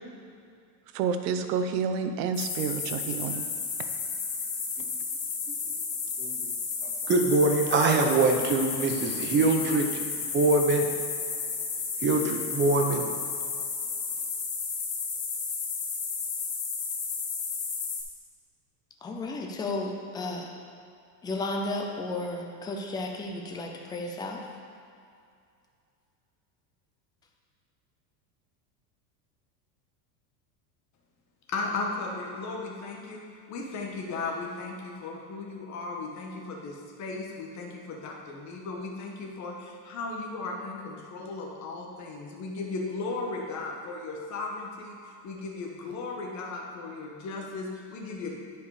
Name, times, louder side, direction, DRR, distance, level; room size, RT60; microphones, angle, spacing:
voice 1, 0.9-3.4, right 6 dB, 75° right, 7 dB, 0.9 m, -29 dB
sound 1, 2.3-18.0, left 5 dB, 55° left, 1.8 m, -32 dB
voice 2, 6.2-6.5 6.8-10.9 12.0-13.1, right 3 dB, 25° right, 3 dB, 0.7 m, -24 dB
voice 3, 19.0-20.5 21.2-24.4, left 2 dB, 10° left, 1 dB, 0.4 m, -33 dB
voice 4, 31.5-48.3, left 3 dB, 35° left, 0 dB, 1.4 m, -36 dB
10.0 x 5.1 x 4.9 m, 2.5 s
supercardioid pair, 145°, 49 cm